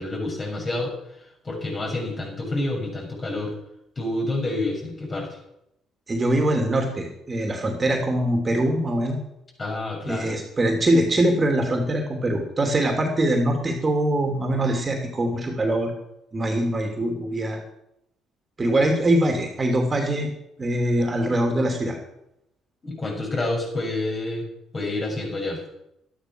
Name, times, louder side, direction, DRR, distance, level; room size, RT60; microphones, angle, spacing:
voice 1, 0.0-3.5 4.0-5.4 9.6-10.4 22.8-24.5 24.7-25.6, left 2 dB, 35° left, -1 dB, 7.2 m, -28 dB
voice 2, 6.1-9.2 10.1-15.9 16.3-17.6 18.6-20.3 20.6-22.0, right 1 dB, 30° right, 3 dB, 2.9 m, -23 dB
12.5 x 11.5 x 6.2 m, 0.81 s
supercardioid pair, 70°, 0 cm